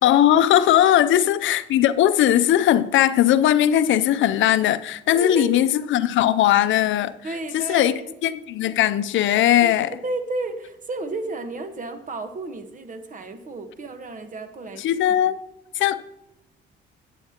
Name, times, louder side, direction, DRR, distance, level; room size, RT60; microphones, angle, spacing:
voice 1, 0.0-7.1 7.5-9.9 14.8-15.4 15.8-16.0, left 11 dB, 75° left, 0.5 m, -19 dB
voice 2, 5.1-5.5 7.2-8.1 9.6-9.7 10.0-14.8, right 2 dB, 40° right, 1.1 m, -32 dB
11.5 x 9.1 x 2.9 m
cardioid pair, 90°, 20 cm